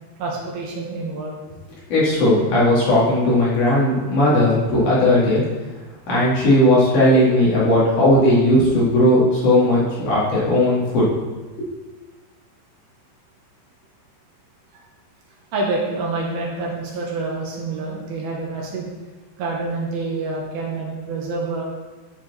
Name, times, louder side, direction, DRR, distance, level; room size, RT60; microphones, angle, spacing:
voice 1, 0.2-1.4 15.5-18.9 19.4-21.6, right 3 dB, 70° right, -2 dB, 2.5 m, -27 dB
voice 2, 1.9-5.4 6.1-11.1 11.6-11.7, left 1 dB, 50° left, -7 dB, 3.1 m, -17 dB
12.0 x 4.7 x 4.1 m, 1.2 s
omnidirectional pair, 5.6 m